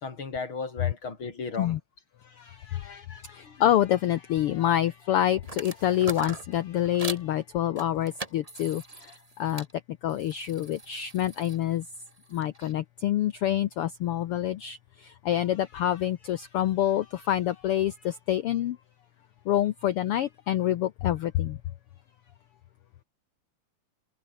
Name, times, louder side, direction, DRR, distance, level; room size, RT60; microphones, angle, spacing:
voice 1, 0.0-1.8 2.9-3.6, left 4 dB, 40° left, 4.2 m, -36 dB
voice 2, 2.4-9.7 10.0-11.8 12.3-18.8 19.5-21.6, left 12 dB, 90° left, 1.2 m, -27 dB
sound 1, 5.4-7.3 7.8-9.7 10.1-12.7, right 3 dB, 20° right, 0.9 m, -42 dB
omnidirectional pair, 3.6 m